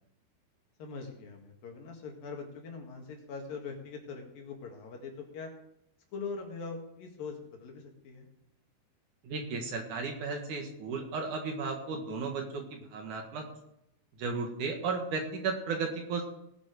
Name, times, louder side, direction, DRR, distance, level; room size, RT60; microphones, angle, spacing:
voice 1, 0.8-5.5 6.1-8.3, left 4 dB, 65° left, 2 dB, 3.5 m, -42 dB
voice 2, 9.2-13.5 14.2-16.2, right 4 dB, 60° right, 3 dB, 2.7 m, -34 dB
18.5 x 7.4 x 5.0 m, 0.81 s
omnidirectional pair, 4.5 m